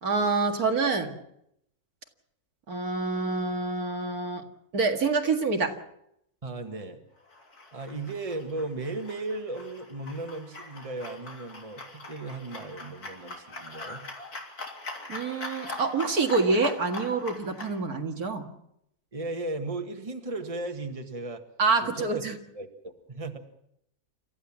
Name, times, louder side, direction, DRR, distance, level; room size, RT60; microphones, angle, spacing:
voice 1, 0.0-1.1 2.7-4.4 4.7-5.8 15.1-18.5 21.6-22.4, right 4 dB, 75° right, 4 dB, 2.5 m, -26 dB
voice 2, 6.4-7.0 7.7-14.0 19.1-21.4 21.8-22.2 22.5-23.4, right 2 dB, 25° right, 5 dB, 1.7 m, -36 dB
sound 1, 7.3-17.8, left 3 dB, 85° left, 3.8 m, -42 dB
29.0 x 14.0 x 7.4 m, 0.76 s
omnidirectional pair, 1.6 m